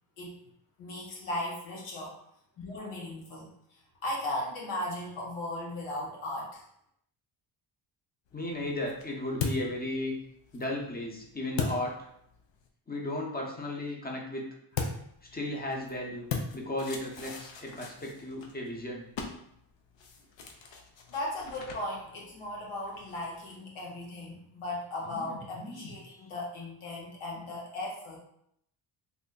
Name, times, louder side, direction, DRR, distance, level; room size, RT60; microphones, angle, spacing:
voice 1, 0.8-2.1 2.6-6.7 21.1-28.2, left 1 dB, 90° left, -3 dB, 1.2 m, -37 dB
sound 1, 8.3-12.7 14.7-23.6, left 5 dB, 65° left, 0.7 m, -40 dB
voice 2, 8.3-10.1 10.5-11.9 12.9-14.4 15.3-16.3 16.5-19.0 25.1-25.2 25.6-25.9, left 1 dB, 20° left, 0 dB, 0.8 m, -35 dB
3.4 x 2.1 x 3.8 m, 0.73 s
cardioid pair, 80°, 49 cm